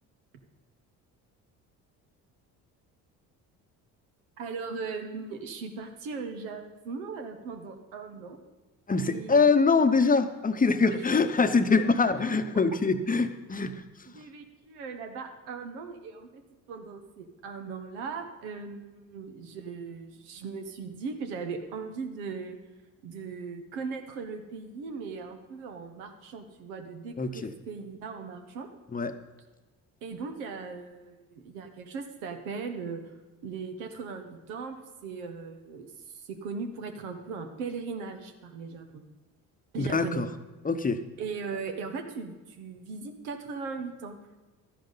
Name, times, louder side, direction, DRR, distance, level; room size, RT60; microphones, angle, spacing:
voice 1, 4.4-8.4 9.1-9.5 10.9-11.3 11.7-12.6 14.1-16.4 16.7-22.6 23.0-28.7 30.0-33.0 33.4-39.0 39.7-40.2 41.2-44.2, right 5 dB, 90° right, 6 dB, 1.2 m, -38 dB
voice 2, 8.9-13.8 27.2-27.5 28.9-29.1 39.8-40.3 40.6-41.0, left 4 dB, 20° left, 10 dB, 0.8 m, -24 dB
12.5 x 10.5 x 4.0 m, 1.2 s
supercardioid pair, 65°, 41 cm